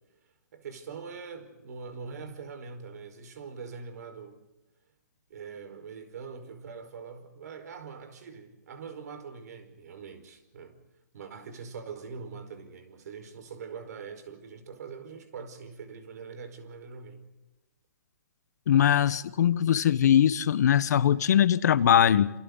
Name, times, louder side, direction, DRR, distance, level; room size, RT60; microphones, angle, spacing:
voice 1, 0.5-4.4 5.3-10.8 11.1-17.3, right 5 dB, 60° right, 5.0 m, -43 dB
voice 2, 18.7-22.3, left 9 dB, 65° left, 1.2 m, -21 dB
28.5 x 28.0 x 4.1 m
hypercardioid pair, 150°, 10 cm